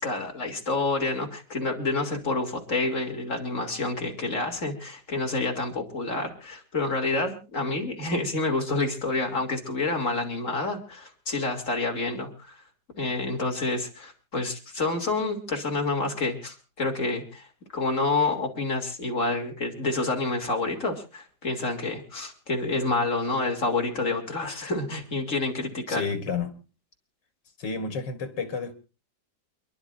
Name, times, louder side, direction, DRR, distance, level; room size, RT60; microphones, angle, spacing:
voice 1, 0.0-12.6 13.0-17.5 17.7-26.1, left 3 dB, 45° left, 3.6 m, -28 dB
voice 2, 25.9-26.5 27.6-28.7, left 5 dB, 90° left, 2.4 m, -30 dB
28.5 x 11.5 x 2.6 m
omnidirectional pair, 1.9 m